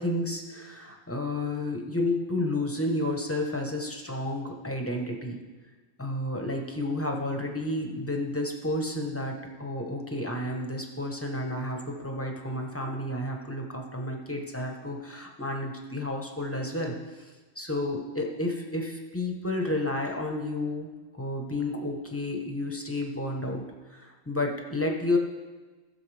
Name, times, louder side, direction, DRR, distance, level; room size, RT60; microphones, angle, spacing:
voice 1, 0.0-5.4 6.0-17.3 17.6-20.9 21.2-25.2, left 1 dB, 10° left, 1 dB, 1.0 m, -31 dB
17.0 x 6.9 x 3.5 m, 1.3 s
omnidirectional pair, 1.5 m